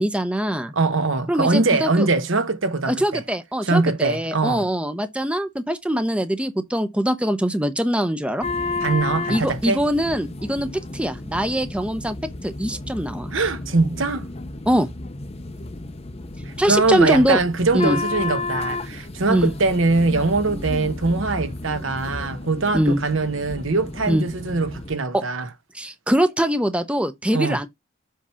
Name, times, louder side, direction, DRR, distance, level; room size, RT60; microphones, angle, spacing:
voice 1, 0.0-0.7 1.3-2.1 2.9-8.5 9.3-12.2 12.4-13.3 14.7-14.9 16.6-17.4 17.7-18.0 19.3-19.5 22.7-23.0 24.1-24.2 25.1-25.2 25.7-27.7, equal, 5° right, 0.7 m, -22 dB
voice 2, 0.7-3.2 3.6-4.7 8.8-9.8 13.3-14.3 16.5-25.5 27.3-27.6, right 3 dB, 70° right, 1.1 m, -22 dB
sound 1, 8.4-25.0, left 3 dB, 30° left, 0.7 m, -32 dB
7.5 x 3.4 x 5.6 m
head